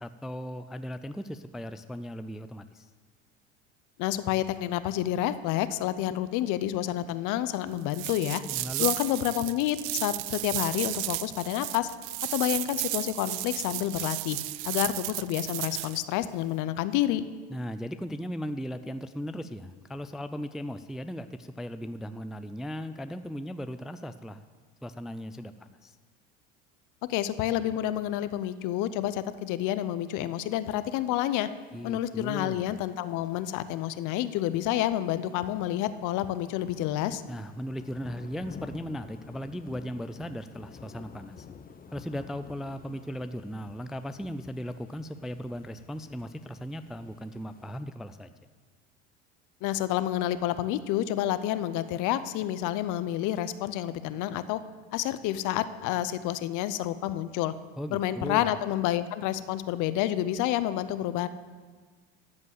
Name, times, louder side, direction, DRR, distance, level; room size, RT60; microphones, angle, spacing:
voice 1, 0.0-2.9 8.5-8.9 17.5-24.4 24.8-25.9 31.7-32.8 37.3-41.5 41.9-48.3 57.8-58.5, equal, ahead, 10 dB, 0.3 m, -37 dB
voice 2, 4.0-11.9 12.3-14.4 14.6-17.3 27.1-31.5 31.8-37.2 49.6-54.6 54.9-57.5 57.9-61.3, left 13 dB, 60° left, 13 dB, 0.7 m, -29 dB
sound 1, 7.9-16.0, right 20 dB, 70° right, 0.5 m, -33 dB
sound 2, 30.6-47.8, left 6 dB, 25° left, 0.8 m, -51 dB
13.0 x 5.3 x 8.1 m, 1.5 s
supercardioid pair, 90°, 34 cm